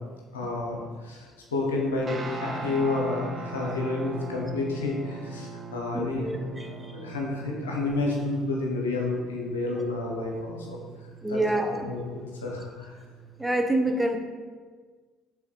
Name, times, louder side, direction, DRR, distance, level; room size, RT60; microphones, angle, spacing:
voice 1, 0.3-10.8 11.3-13.0, left 3 dB, 90° left, -1 dB, 0.9 m, -30 dB
Guitar, 2.0-13.5, right 4 dB, 40° right, 0.9 m, -41 dB
voice 2, 5.9-6.7 11.2-11.9 13.4-14.2, right 1 dB, 10° right, 4 dB, 0.8 m, -26 dB
5.6 x 3.8 x 4.6 m, 1.5 s
hypercardioid pair, 60°, 0 cm